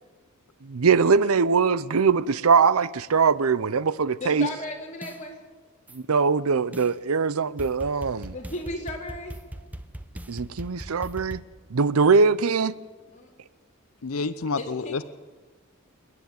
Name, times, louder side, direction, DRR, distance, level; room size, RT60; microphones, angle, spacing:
voice 1, 0.6-4.5 5.9-8.3 10.3-11.4 11.7-12.7, right 5 dB, 90° right, 0.7 m, -22 dB
voice 2, 4.2-5.4 8.3-9.4 13.1-13.3 14.6-15.0, left 2 dB, 35° left, 4.0 m, -35 dB
sound 1, 5.0-5.2 5.9-6.0 6.7-6.9 7.6-11.4, equal, 5° right, 0.8 m, -39 dB
voice 3, 14.0-15.0, left 4 dB, 80° left, 0.7 m, -29 dB
28.0 x 9.8 x 9.4 m
head